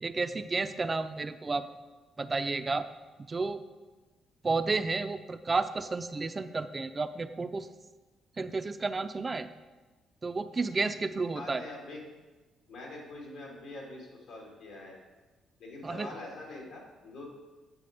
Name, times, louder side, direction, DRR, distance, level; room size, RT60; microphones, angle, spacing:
voice 1, 0.0-1.7 2.2-2.9 3.3-3.6 4.4-7.7 8.4-9.5 10.2-11.6 15.8-16.1, right 3 dB, 30° right, 10 dB, 0.5 m, -31 dB
voice 2, 11.3-12.0 12.7-15.0 15.6-17.2, left 2 dB, 80° left, -2 dB, 2.7 m, -44 dB
8.4 x 6.2 x 5.2 m, 1.2 s
cardioid pair, 90°, 0 cm